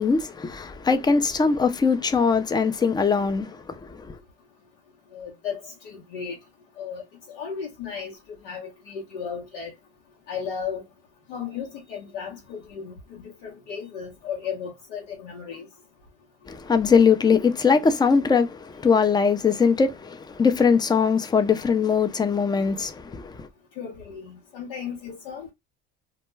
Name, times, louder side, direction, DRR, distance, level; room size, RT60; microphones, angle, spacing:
voice 1, 0.0-4.2 16.5-23.5, left 5 dB, 15° left, 0.4 m, -21 dB
voice 2, 5.1-6.4 6.8-7.0 7.3-9.7 10.3-10.8 11.3-15.7 23.8-25.5, left 7 dB, 85° left, 0.9 m, -35 dB
2.2 x 2.1 x 3.0 m
supercardioid pair, 85°, 30 cm